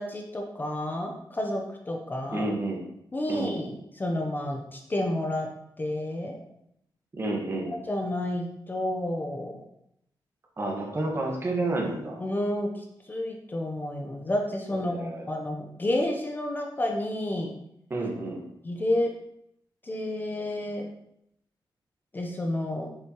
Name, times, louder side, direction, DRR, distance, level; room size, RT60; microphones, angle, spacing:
voice 1, 0.0-2.5 3.1-5.5 5.8-6.4 7.9-9.6 12.2-17.5 18.6-19.1 19.8-20.9 22.1-22.9, left 1 dB, 25° left, 1 dB, 0.8 m, -30 dB
voice 2, 2.3-2.8 3.3-3.6 7.1-7.7 10.6-12.2 14.7-15.2 17.9-18.4, right 2 dB, 30° right, 0 dB, 1.5 m, -30 dB
8.0 x 6.9 x 3.1 m, 0.76 s
wide cardioid pair, 145°, 8 cm